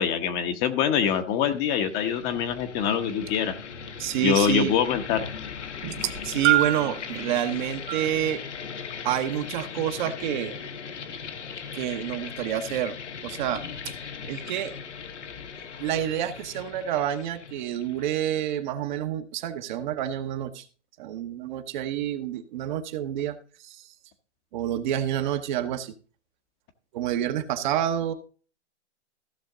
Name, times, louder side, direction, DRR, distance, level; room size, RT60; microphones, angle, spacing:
voice 1, 0.0-3.5 4.2-5.2, left 8 dB, 25° left, 7 dB, 1.0 m, -24 dB
sound 1, 1.5-18.2, left 6 dB, 70° left, 1.4 m, -39 dB
voice 2, 4.0-4.8 6.2-8.4 9.0-10.6 11.7-13.0 13.2-13.9 14.3-14.7 15.8-20.6 21.0-23.4 23.6-23.9 24.5-25.9 26.9-28.1, right 11 dB, 40° right, 8 dB, 1.1 m, -28 dB
sound 2, 5.8-7.0 7.9-8.1 9.1-9.2, right 15 dB, 15° right, 0.4 m, -24 dB
15.0 x 6.2 x 3.8 m, 0.37 s
hypercardioid pair, 130°, 36 cm